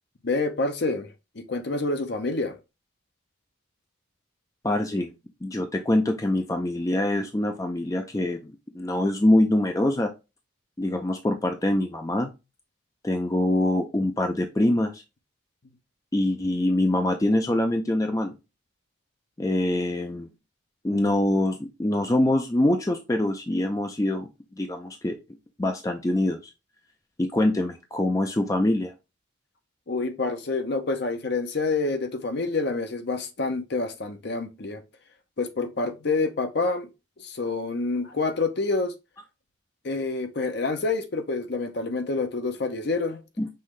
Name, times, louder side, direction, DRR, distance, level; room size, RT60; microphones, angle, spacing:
voice 1, 0.2-2.6 29.9-34.8 35.4-36.9 37.2-38.9 39.8-43.2, left 3 dB, 55° left, 0.7 m, -27 dB
voice 2, 4.6-5.1 5.4-10.1 10.8-12.3 13.0-15.0 16.1-18.4 19.4-20.3 20.8-24.3 24.6-25.2 25.6-26.4 27.2-28.9 43.4-43.5, left 1 dB, 15° left, 0.4 m, -24 dB
5.5 x 2.7 x 3.1 m
head